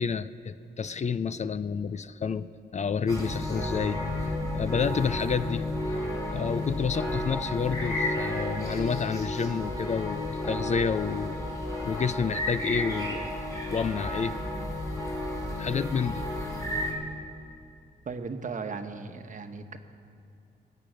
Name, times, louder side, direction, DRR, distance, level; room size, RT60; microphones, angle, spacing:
voice 1, 0.0-4.0 4.5-5.7 6.3-11.4 11.8-13.4 13.7-14.4 15.6-16.2, left 6 dB, 40° left, 14 dB, 0.4 m, -29 dB
sound 1, 3.1-16.9, left 1 dB, 20° left, 3.4 m, -32 dB
voice 2, 18.1-19.8, right 4 dB, 45° right, 7 dB, 1.1 m, -36 dB
21.0 x 8.5 x 6.3 m, 2.6 s
cardioid pair, 80°, 18 cm